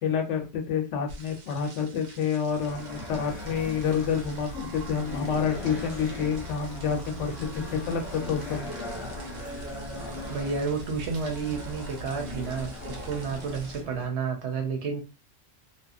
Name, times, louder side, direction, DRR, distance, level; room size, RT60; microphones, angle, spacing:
voice 1, 0.0-8.7, left 6 dB, 70° left, 4 dB, 1.0 m, -28 dB
sound 1, 1.1-13.8, right 3 dB, 90° right, 1.1 m, -50 dB
sound 2, 2.4-14.1, left 1 dB, 20° left, 0.9 m, -38 dB
voice 2, 10.3-15.0, right 5 dB, 65° right, 3 dB, 0.9 m, -31 dB
2.9 x 2.3 x 2.5 m, 0.27 s
omnidirectional pair, 1.3 m